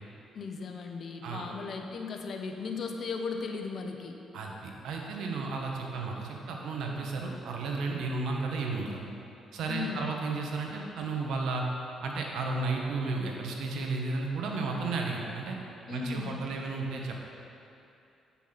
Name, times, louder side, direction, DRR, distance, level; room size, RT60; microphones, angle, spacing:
voice 1, 0.3-4.2 9.7-10.2 15.9-16.4, left 5 dB, 55° left, 4 dB, 0.8 m, -37 dB
voice 2, 4.3-9.0 9.5-11.6 12.0-15.6 15.9-17.1, right 3 dB, 80° right, 1 dB, 1.2 m, -33 dB
8.4 x 5.7 x 5.9 m, 2.7 s
cardioid pair, 90°, 0 cm